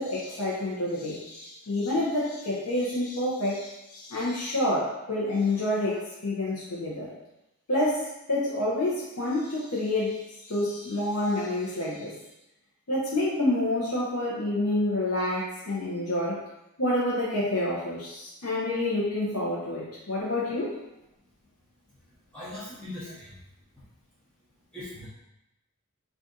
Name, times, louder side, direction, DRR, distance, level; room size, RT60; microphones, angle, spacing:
voice 1, 0.0-7.1 7.7-12.1 12.9-16.4 16.8-20.7, left 1 dB, 85° left, -7 dB, 0.7 m, -28 dB
voice 2, 21.9-23.4 23.8-23.9 24.7-25.1, left 1 dB, 5° left, -13 dB, 0.6 m, -41 dB
2.6 x 2.4 x 3.6 m, 0.92 s
head